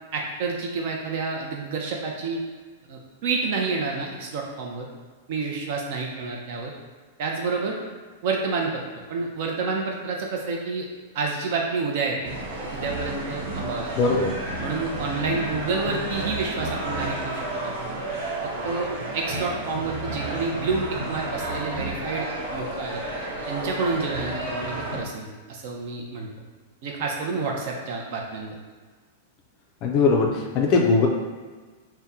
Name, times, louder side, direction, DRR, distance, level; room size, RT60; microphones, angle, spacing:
voice 1, 0.1-2.4 2.9-4.9 5.3-6.7 7.2-7.8 8.2-8.8 9.1-10.9 11.1-13.9 14.6-18.0 18.4-23.0 23.5-26.3 26.8-28.6, right 4 dB, 45° right, 0 dB, 0.5 m, -29 dB
sound 1, 12.2-25.0, right 1 dB, 75° right, 1.2 m, -31 dB
voice 2, 14.0-14.3 29.8-31.1, left 4 dB, 30° left, 0 dB, 0.4 m, -20 dB
2.8 x 2.1 x 3.5 m, 1.4 s
supercardioid pair, 170°, 0 cm